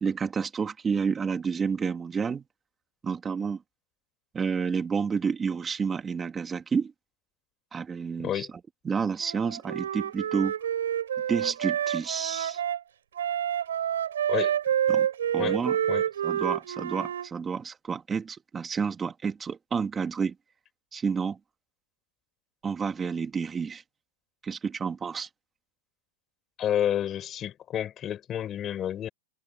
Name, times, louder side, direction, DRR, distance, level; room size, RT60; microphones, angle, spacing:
voice 1, 0.0-2.4 3.0-3.6 4.3-6.9 7.7-8.5 8.8-10.5 11.3-12.6 14.9-15.1 15.3-15.8 16.2-20.3 20.9-21.4 22.6-23.8 24.4-25.3, right 6 dB, 15° right, 2.8 m, -30 dB
voice 2, 8.2-8.5 14.3-14.6 15.4-15.6 15.9-16.1 26.6-29.1, left 10 dB, 20° left, 7.0 m, -30 dB
Wind instrument woodwind instrument, 9.2-12.8 13.2-17.3, right 9 dB, 90° right, 4.7 m, -28 dB
supercardioid pair, 155°, 0 cm